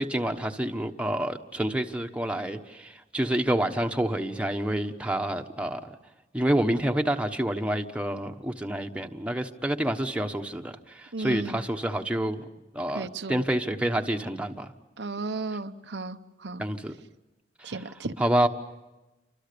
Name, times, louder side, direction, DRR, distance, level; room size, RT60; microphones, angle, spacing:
voice 1, 0.0-5.9 6.3-12.4 12.7-14.7 16.6-16.9 17.6-17.7 18.2-18.5, right 1 dB, 5° right, 4 dB, 1.2 m, -28 dB
voice 2, 11.1-11.6 12.9-13.4 15.0-16.6 17.6-18.1, right 3 dB, 90° right, 8 dB, 0.9 m, -34 dB
29.0 x 25.5 x 6.9 m, 1.0 s
head